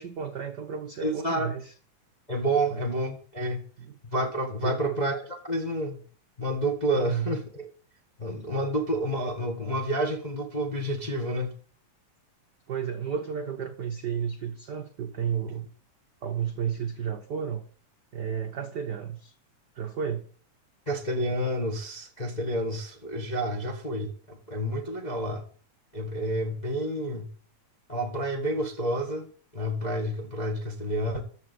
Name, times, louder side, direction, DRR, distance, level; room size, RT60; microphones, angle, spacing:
voice 1, 0.0-1.7 2.7-2.8 3.8-3.9 4.6-4.9 6.9-7.4 12.7-15.7 16.2-17.6 18.1-19.3 19.7-20.3, right 7 dB, 70° right, 1.0 m, -32 dB
voice 2, 1.0-1.5 2.3-3.6 4.0-6.0 6.4-7.7 8.2-11.5 20.9-25.4 25.9-27.3 27.9-31.2, right 1 dB, 25° left, 0.9 m, -29 dB
14.0 x 5.2 x 8.3 m
omnidirectional pair, 3.4 m